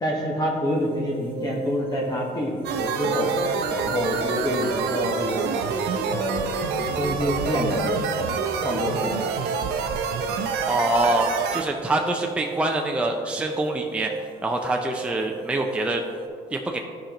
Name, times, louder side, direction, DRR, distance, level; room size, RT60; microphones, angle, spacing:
voice 1, 0.0-3.3 3.7-5.7 6.0-6.5 7.0-8.3 8.6-9.3, equal, 25° left, -2 dB, 1.1 m, -27 dB
sound 1, 0.6-16.3, right 1 dB, 30° right, 1.4 m, -37 dB
sound 2, 2.6-11.6, right 6 dB, 75° right, 0.6 m, -27 dB
voice 2, 10.7-14.1 14.4-16.0 16.5-16.8, right 2 dB, 5° right, 2 dB, 0.5 m, -25 dB
11.5 x 5.1 x 3.0 m, 2.3 s
cardioid pair, 110°, 17 cm